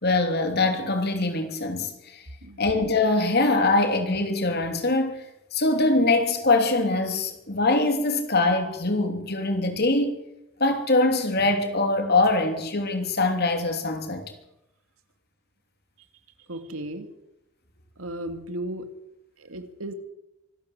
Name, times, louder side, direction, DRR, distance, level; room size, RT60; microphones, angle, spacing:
voice 1, 0.0-2.2 2.6-5.2 5.5-10.2 10.6-14.3, left 2 dB, 50° left, 3.1 m, -23 dB
voice 2, 16.5-17.1 18.0-18.9 19.4-19.9, right 1 dB, 80° right, 2.5 m, -35 dB
25.0 x 12.0 x 9.4 m
head